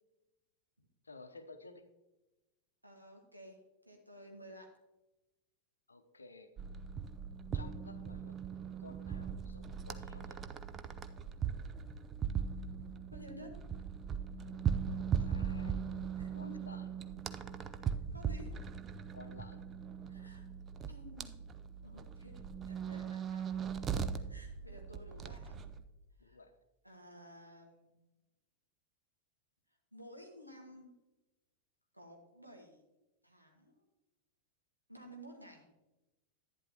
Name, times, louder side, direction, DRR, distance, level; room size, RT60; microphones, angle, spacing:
voice 1, 1.0-1.8 5.9-6.5 7.5-8.3 8.8-10.4 15.2-15.9 16.3-16.9 19.1-19.6 26.2-26.5, left 3 dB, 75° left, 9 dB, 0.8 m, -54 dB
voice 2, 2.8-4.7 13.1-13.7 16.2-16.6 18.1-18.7 20.1-20.5 20.9-21.5 21.8-25.7 26.2-26.4 26.8-27.9 29.9-30.9 31.9-32.8 33.2-33.8 34.9-35.7, equal, 85° right, 2 dB, 1.5 m, -54 dB
sound 1, 6.6-25.8, right 7 dB, 25° right, 0.5 m, -39 dB
11.0 x 10.0 x 2.9 m, 1.0 s
figure-of-eight pair, 90°, 0 cm